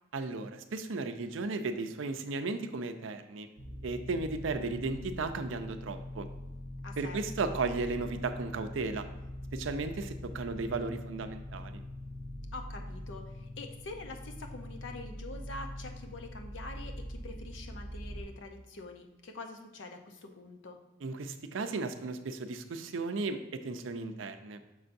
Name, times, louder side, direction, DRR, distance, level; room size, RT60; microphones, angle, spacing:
voice 1, 0.1-3.5 3.8-6.3 7.0-9.0 9.5-11.8 21.0-24.6, right 3 dB, 75° right, 8 dB, 0.5 m, -35 dB
sound 1, 3.6-18.2, left 1 dB, 40° left, 1.0 m, -43 dB
voice 2, 6.8-7.6 12.5-20.8, left 3 dB, 70° left, 4 dB, 0.7 m, -45 dB
6.5 x 5.6 x 2.6 m, 1.1 s
head